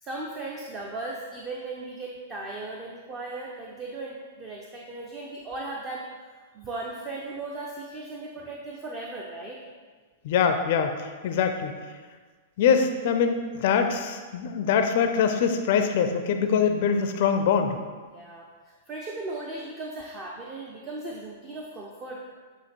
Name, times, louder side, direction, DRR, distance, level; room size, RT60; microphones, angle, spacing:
voice 1, 0.0-6.1 6.5-9.6 18.1-22.3, right 2 dB, 25° right, -2 dB, 0.7 m, -37 dB
voice 2, 10.2-11.0 11.2-11.8 12.6-17.8, left 6 dB, 50° left, 6 dB, 0.4 m, -23 dB
8.2 x 2.9 x 4.3 m, 1.5 s
figure-of-eight pair, 100°, 0 cm